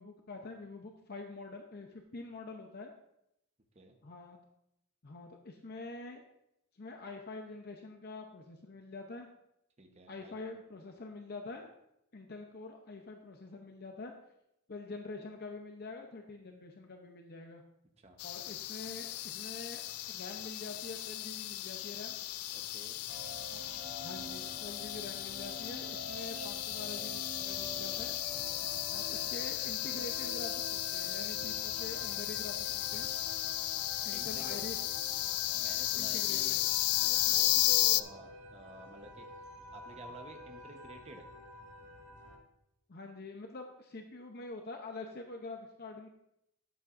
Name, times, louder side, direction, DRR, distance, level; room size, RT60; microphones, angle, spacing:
voice 1, 0.0-2.9 4.0-4.4 5.0-6.2 6.7-9.3 10.1-11.7 12.1-14.1 14.7-17.6 18.2-22.2 23.5-28.1 28.9-33.1 34.0-34.8 36.0-36.6 42.9-46.1, left 3 dB, 45° left, 3 dB, 0.7 m, -46 dB
voice 2, 9.8-10.3 18.0-18.2 22.5-23.0 34.1-34.6 35.5-39.3 39.7-41.2, right 1 dB, 30° right, 4 dB, 1.0 m, -51 dB
sound 1, 18.2-38.0, left 15 dB, 85° left, 0.4 m, -34 dB
sound 2, 23.1-42.4, right 1 dB, 75° right, 1.7 m, -48 dB
12.0 x 8.5 x 2.5 m, 0.81 s
head